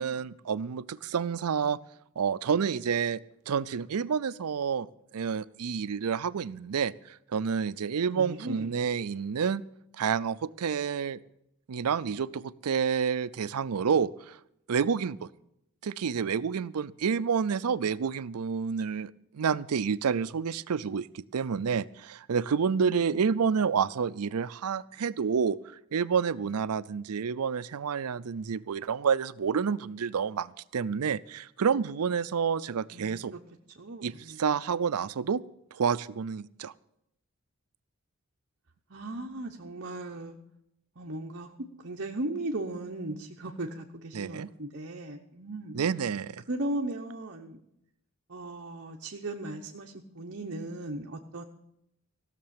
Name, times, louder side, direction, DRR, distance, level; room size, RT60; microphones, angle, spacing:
voice 1, 0.0-1.8 2.2-3.2 3.5-4.9 5.1-9.6 10.0-11.2 11.7-14.4 14.7-15.3 15.8-25.6 25.9-33.3 34.0-35.4 35.7-36.7 44.1-44.5 45.7-46.4, right 6 dB, 90° right, 15 dB, 0.5 m, -29 dB
voice 2, 8.0-8.7 23.0-23.6 32.9-33.4 33.8-34.4 38.9-40.4 41.0-41.5 41.8-45.8 46.5-47.6 48.3-51.4, right 1 dB, 55° right, 1 dB, 1.0 m, -37 dB
16.0 x 6.7 x 8.7 m, 0.78 s
head